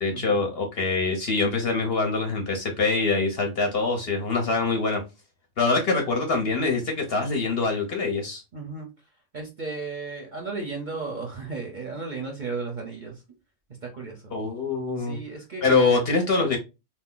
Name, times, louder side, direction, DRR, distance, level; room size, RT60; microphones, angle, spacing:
voice 1, 0.0-5.0 5.6-8.4 14.3-15.2 15.6-16.6, left 3 dB, 55° left, 0.8 m, -24 dB
voice 2, 8.5-8.9 9.3-13.2 13.9-14.3 15.0-16.0, right 4 dB, 45° right, 0.7 m, -34 dB
2.7 x 2.1 x 3.6 m
omnidirectional pair, 1.4 m